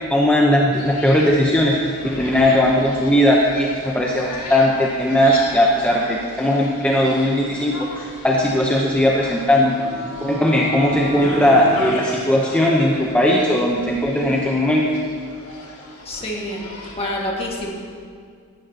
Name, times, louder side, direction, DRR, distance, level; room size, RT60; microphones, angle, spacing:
voice 1, 0.1-9.8 10.2-14.8, left 1 dB, 5° left, -3 dB, 0.8 m, -18 dB
sound 1, 0.7-16.9, left 2 dB, 70° left, 2.1 m, -37 dB
sound 2, 9.3-11.9, equal, 70° right, 2.9 m, -31 dB
voice 2, 16.1-16.6 17.0-17.7, left 1 dB, 25° left, -1 dB, 1.7 m, -27 dB
16.5 x 12.0 x 2.9 m, 2.1 s
head